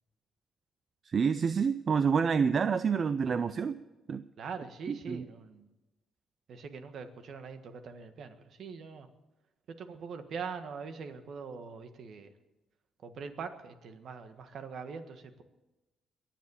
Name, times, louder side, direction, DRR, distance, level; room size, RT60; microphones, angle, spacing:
voice 1, 1.1-3.8 4.1-4.2 4.9-5.3, right 6 dB, 45° right, 13 dB, 0.5 m, -28 dB
voice 2, 4.4-5.7 6.5-9.1 9.7-12.3 13.0-15.4, right 5 dB, 65° right, 8 dB, 1.5 m, -43 dB
22.5 x 7.5 x 7.0 m, 1.1 s
cardioid pair, 90°, 0 cm